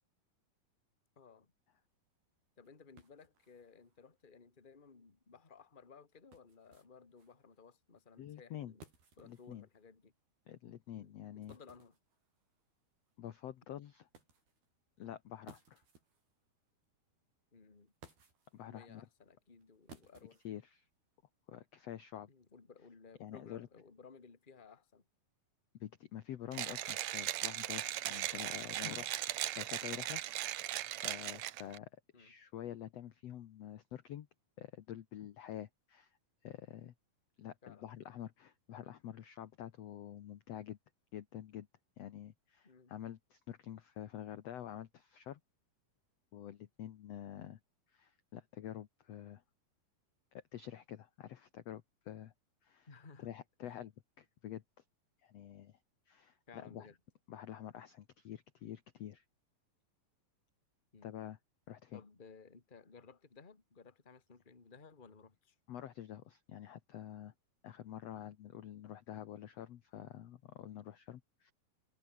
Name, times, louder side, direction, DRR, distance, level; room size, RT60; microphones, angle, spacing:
voice 1, 1.2-1.5 2.6-8.8 9.2-10.1 11.0-11.1 11.5-12.0 17.5-17.9 18.7-20.4 22.3-25.0 32.1-32.3 37.6-37.9 42.6-43.0 52.9-53.3 53.6-53.8 56.5-57.0 60.9-61.1 61.9-65.6 68.2-68.4, left 5 dB, 20° left, 1.7 m, -58 dB
sound 1, 1.6-21.2, right 4 dB, 85° right, 9.2 m, -65 dB
voice 2, 8.2-8.7 9.2-9.6 10.5-11.5 13.2-14.1 15.0-15.8 18.5-19.0 20.4-20.9 21.5-22.3 23.2-23.7 25.8-30.2 31.0-31.9 32.1-34.3 34.6-36.2 36.4-36.9 37.4-40.8 41.1-41.7 42.0-45.4 46.3-47.6 47.9-49.4 50.3-52.3 52.6-52.9 53.2-53.9 54.2-54.6 55.2-55.8 56.1-56.9 57.3-59.2 61.0-61.4 61.7-62.0 65.7-67.3 67.6-71.5, left 11 dB, 65° left, 1.7 m, -47 dB
Mechanisms, 26.5-31.8, right 14 dB, 70° right, 1.7 m, -38 dB
omnidirectional pair, 4.3 m